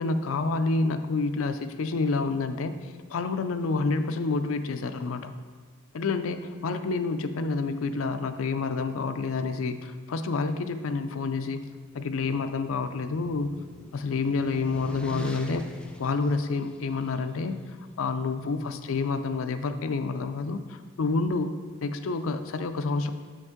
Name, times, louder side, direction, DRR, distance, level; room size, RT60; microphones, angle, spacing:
voice 1, 0.0-5.3 5.9-11.7 11.9-13.6 13.9-15.7 16.0-17.6 18.0-21.5 21.8-23.1, left 3 dB, 75° left, 9 dB, 0.4 m, -28 dB
sound 1, 12.5-17.2, left 1 dB, 5° left, 0.4 m, -44 dB
6.5 x 5.3 x 3.6 m, 1.5 s
head